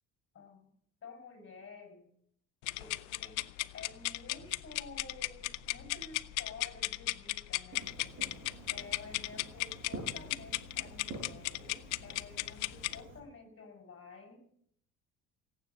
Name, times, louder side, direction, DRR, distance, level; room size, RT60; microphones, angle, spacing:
voice 1, 0.3-0.7 1.0-2.1 2.7-3.5 3.7-7.9 8.7-14.4, left 4 dB, 35° left, 5 dB, 6.3 m, -51 dB
sound 1, 2.6-13.0, left 21 dB, 85° left, 0.7 m, -36 dB
sound 2, 4.4-9.0, right 1 dB, 15° left, 6.2 m, -60 dB
Fireworks, 7.7-13.2, right 2 dB, 40° right, 7.2 m, -48 dB
17.5 x 9.6 x 7.1 m, 0.70 s
supercardioid pair, 85°, 35 cm